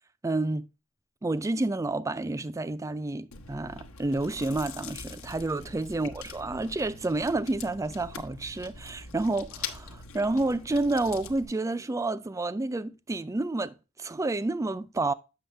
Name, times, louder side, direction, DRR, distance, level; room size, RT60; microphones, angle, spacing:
voice 1, 0.2-0.7 1.2-15.1, right 2 dB, 15° right, 0.3 m, -30 dB
Chewing mastication, 3.3-11.5, left 5 dB, 70° left, 1.0 m, -43 dB
7.7 x 6.3 x 3.2 m
head